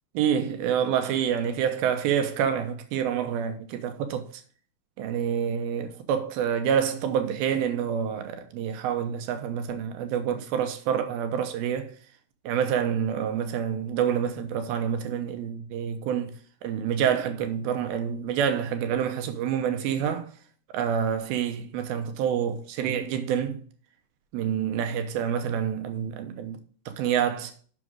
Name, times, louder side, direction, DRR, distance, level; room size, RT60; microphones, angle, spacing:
voice 1, 0.1-4.3 5.0-11.9 12.4-20.3 20.7-23.6 24.3-26.6 26.9-27.5, right 8 dB, 85° right, 2.8 m, -27 dB
6.9 x 6.1 x 6.2 m
omnidirectional pair, 4.2 m